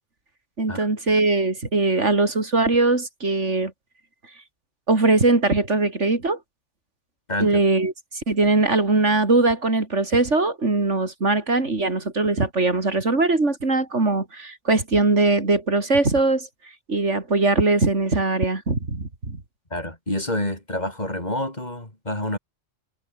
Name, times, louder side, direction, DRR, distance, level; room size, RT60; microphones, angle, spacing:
voice 1, 0.6-3.7 4.9-6.4 7.4-19.4, right 3 dB, 85° right, 4.0 m, -21 dB
voice 2, 7.3-7.6 19.7-22.4, left 1 dB, 35° left, 5.1 m, -28 dB
omnidirectional pair, 1.2 m